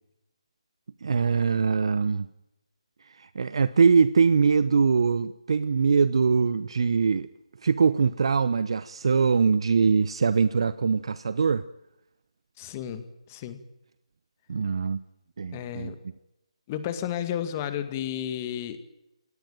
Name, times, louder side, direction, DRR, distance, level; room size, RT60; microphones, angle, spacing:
voice 1, 1.0-2.3 3.2-7.3 7.6-11.6 14.5-15.0 15.4-15.9, right 5 dB, 55° right, 0.8 m, -22 dB
voice 2, 12.6-13.6 15.5-16.0 16.7-18.8, left 10 dB, 25° left, 2.2 m, -32 dB
26.0 x 18.0 x 9.0 m
figure-of-eight pair, 150°, 3 cm